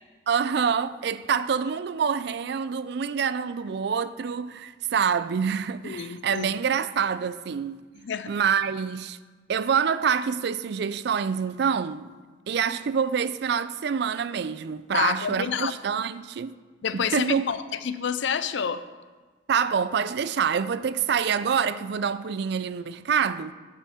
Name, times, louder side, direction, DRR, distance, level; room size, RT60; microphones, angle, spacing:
voice 1, 0.3-7.8 8.3-9.2 9.5-12.1 12.5-16.5 16.9-17.4 19.5-23.5, right 7 dB, 65° right, 0.4 m, -26 dB
voice 2, 5.8-6.5 8.0-8.3 14.9-15.7 16.8-18.8, left 7 dB, 75° left, 0.5 m, -28 dB
9.3 x 6.3 x 5.6 m
head